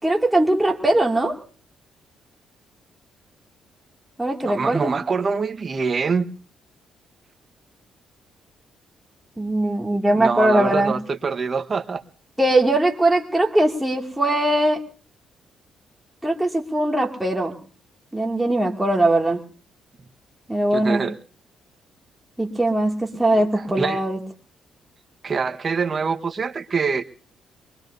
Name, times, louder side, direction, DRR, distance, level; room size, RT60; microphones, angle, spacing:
voice 1, 0.0-1.4 4.2-5.0 9.4-11.0 12.4-14.8 16.2-17.5 18.1-19.4 20.5-21.0 22.4-24.2, right 1 dB, 5° right, -1 dB, 2.4 m, -20 dB
voice 2, 4.4-6.3 10.1-12.0 20.7-21.1 23.4-24.0 25.2-27.0, right 5 dB, 40° right, 8 dB, 1.3 m, -25 dB
23.5 x 22.0 x 2.7 m, 0.42 s
cardioid pair, 90°, 0 cm